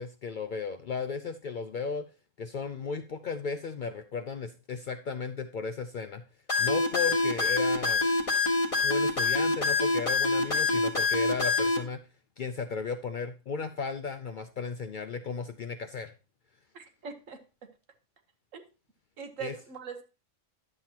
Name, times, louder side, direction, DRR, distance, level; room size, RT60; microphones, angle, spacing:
voice 1, 0.0-2.1 2.4-6.2 6.6-8.1 8.8-12.0 12.4-16.1 19.4-19.5, left 5 dB, 60° left, 8 dB, 0.5 m, -35 dB
sound 1, 6.5-11.8, left 3 dB, 25° left, 1.3 m, -25 dB
voice 2, 16.7-17.4 18.5-18.6 19.2-20.0, right 6 dB, 85° right, 7 dB, 1.5 m, -41 dB
10.5 x 7.7 x 2.8 m, 0.31 s
omnidirectional pair, 1.3 m